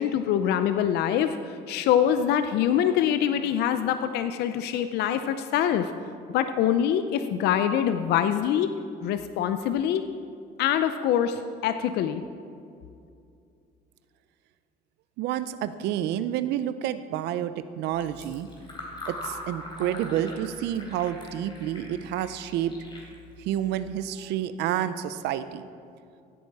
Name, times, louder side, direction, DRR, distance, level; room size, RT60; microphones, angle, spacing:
voice 1, 0.0-5.9 6.3-8.7 9.0-10.0 10.6-12.2, left 9 dB, 80° left, 10 dB, 0.5 m, -24 dB
voice 2, 15.2-18.5 19.1-22.7 23.4-25.7, right 11 dB, 85° right, 13 dB, 0.5 m, -29 dB
Fill (with liquid), 17.9-24.1, left 2 dB, 30° left, 3.3 m, -42 dB
15.5 x 8.7 x 4.7 m, 2.5 s
cardioid pair, 110°, 17 cm